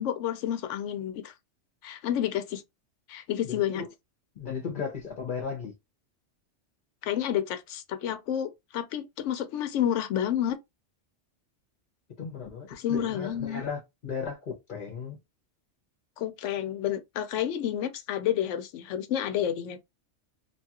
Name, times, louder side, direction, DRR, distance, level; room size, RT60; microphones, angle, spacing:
voice 1, 0.0-1.3 1.8-2.6 3.1-3.8 7.0-10.6 12.7-13.6 16.2-19.8, left 10 dB, 85° left, 0.9 m, -30 dB
voice 2, 3.4-3.9 4.4-5.7 12.2-15.2, left 6 dB, 50° left, 0.8 m, -36 dB
2.8 x 2.3 x 2.8 m
omnidirectional pair, 1.2 m